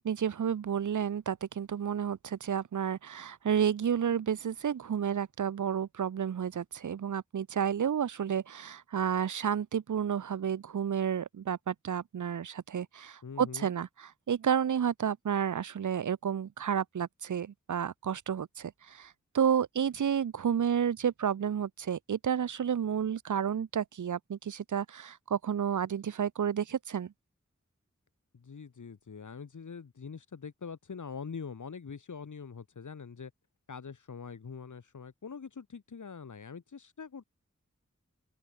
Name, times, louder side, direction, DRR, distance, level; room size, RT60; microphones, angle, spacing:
voice 1, 0.0-27.1, right 8 dB, 90° right, 0.6 m, -31 dB
voice 2, 13.2-13.7 28.3-33.3 33.7-37.3, left 5 dB, 85° left, 1.3 m, -44 dB
open air
wide cardioid pair, 45°, 29 cm